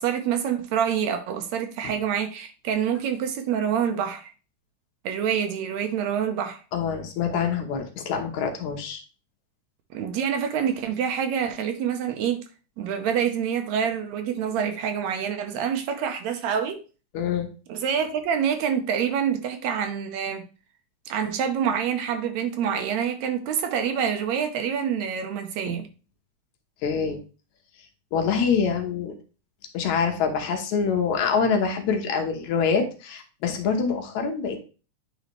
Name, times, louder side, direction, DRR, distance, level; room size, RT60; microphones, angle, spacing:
voice 1, 0.0-4.3 5.1-6.6 9.9-12.4 12.8-16.8 17.7-20.5 21.1-25.9, right 8 dB, 75° right, 1.7 m, -26 dB
voice 2, 6.7-9.0 17.1-17.5 25.7-25.8 26.8-27.2 28.1-29.1 29.7-34.6, left 6 dB, 70° left, 2.2 m, -25 dB
9.1 x 4.0 x 3.0 m
omnidirectional pair, 3.6 m